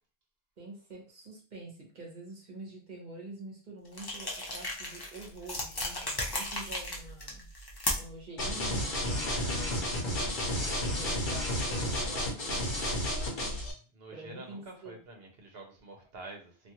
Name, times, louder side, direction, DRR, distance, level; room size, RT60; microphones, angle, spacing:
voice 1, 0.6-7.5 7.9-13.6 14.1-15.0, right 2 dB, 50° right, -2 dB, 1.1 m, -46 dB
sound 1, 3.9-8.2, left 1 dB, 30° left, 0.5 m, -36 dB
sound 2, 8.4-13.7, left 1 dB, 55° left, 0.9 m, -31 dB
voice 2, 9.2-9.7 10.2-10.4 13.9-16.7, right 2 dB, 70° right, 2 dB, 1.0 m, -48 dB
2.5 x 2.4 x 2.9 m, 0.37 s
omnidirectional pair, 1.0 m